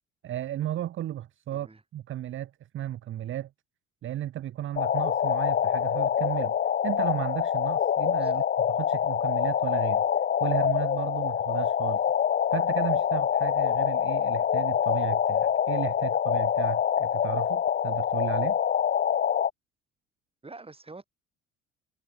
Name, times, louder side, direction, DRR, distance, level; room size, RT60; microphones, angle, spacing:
voice 1, 0.2-1.7 1.9-3.5 4.0-6.5 6.8-10.0 10.4-12.0 12.5-18.6, right 12 dB, 40° right, 0.8 m, -34 dB
voice 2, 1.5-1.8 8.2-8.4 20.4-21.1, right 3 dB, 15° right, 4.0 m, -46 dB
sound 1, 4.8-19.5, left 9 dB, 30° left, 0.7 m, -25 dB
figure-of-eight pair, 55°, 33 cm